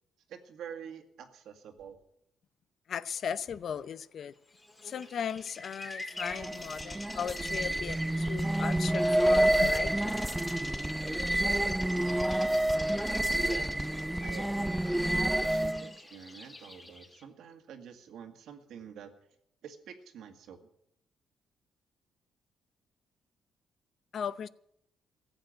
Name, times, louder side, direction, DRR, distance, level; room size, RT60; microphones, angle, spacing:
voice 1, 0.3-2.0 13.3-13.7 14.2-19.1 19.6-20.6, right 8 dB, 75° right, 1.9 m, -47 dB
voice 2, 2.9-4.3 4.8-10.3 24.1-24.5, left 7 dB, 60° left, 0.6 m, -37 dB
Bird vocalization bird call bird song, 4.6-17.2, left 2 dB, 20° left, 2.4 m, -47 dB
sound 1, 6.2-15.9, right 1 dB, 5° right, 0.4 m, -28 dB
15.0 x 8.1 x 9.2 m
cardioid pair, 90°, 0 cm